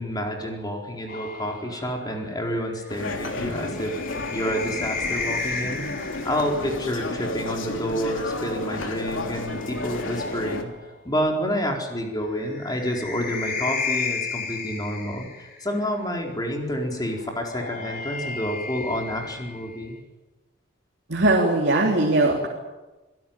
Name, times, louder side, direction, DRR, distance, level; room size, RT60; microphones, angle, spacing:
voice 1, 0.0-20.0, equal, 20° left, 1 dB, 4.3 m, -29 dB
sound 1, 1.1-6.6 8.0-11.0 12.3-15.8 17.1-20.0, left 4 dB, 45° left, 4.3 m, -34 dB
sound 2, 2.9-10.6, left 2 dB, 80° left, 3.1 m, -32 dB
voice 2, 21.1-22.5, right 2 dB, 60° right, 0 dB, 3.4 m, -20 dB
26.0 x 17.0 x 9.0 m, 1.1 s
head